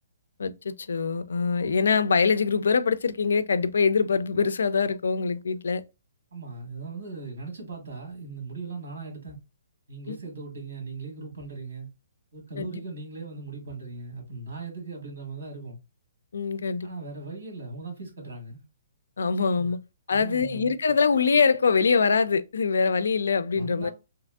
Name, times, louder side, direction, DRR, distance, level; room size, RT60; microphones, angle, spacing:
voice 1, 0.4-5.8 10.1-10.2 12.6-12.8 16.3-16.9 19.2-19.8 20.1-23.9, left 5 dB, 90° left, 0.3 m, -24 dB
voice 2, 6.3-9.4 9.9-11.9 12.3-15.8 16.8-18.6 19.6-19.7 20.1-20.7 23.5-23.9, right 4 dB, 80° right, 1.4 m, -38 dB
2.8 x 2.5 x 2.3 m
hypercardioid pair, 175°, 0 cm